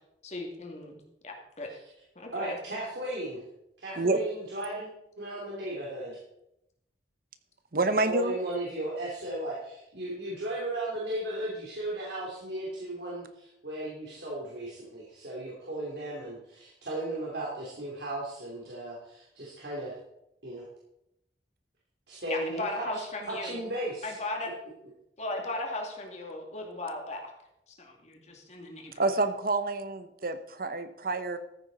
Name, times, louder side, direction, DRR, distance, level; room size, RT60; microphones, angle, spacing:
voice 1, 0.2-0.9 1.2-1.7 2.2-2.6 22.3-23.6 24.0-24.5 25.2-27.3 27.7-29.0, left 2 dB, 40° left, 1 dB, 2.4 m, -37 dB
voice 2, 2.3-3.4 3.8-4.9 5.2-6.2 8.0-20.0 20.4-20.6 22.1-23.0 23.3-24.2, right 1 dB, 70° right, -5 dB, 3.0 m, -35 dB
voice 3, 7.7-8.4 29.0-31.4, right 2 dB, 55° right, 10 dB, 1.0 m, -28 dB
14.5 x 9.0 x 4.1 m, 0.82 s
head